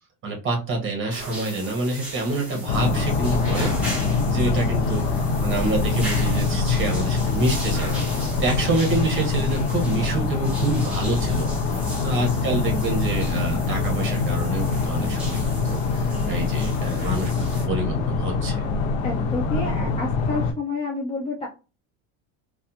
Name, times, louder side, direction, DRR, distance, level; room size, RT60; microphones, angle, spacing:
voice 1, 0.2-5.1 5.4-8.0 8.4-17.3 17.7-18.6, right 2 dB, 30° right, 0 dB, 1.2 m, -27 dB
sound 1, 1.1-17.6, right 1 dB, 5° right, 1.0 m, -38 dB
sound 2, 2.7-20.5, left 4 dB, 80° left, 0.7 m, -24 dB
voice 2, 11.8-12.1 16.1-16.5 19.0-21.5, left 3 dB, 15° left, -3 dB, 0.5 m, -30 dB
3.3 x 2.4 x 2.8 m, 0.31 s
cardioid pair, 155°, 40 cm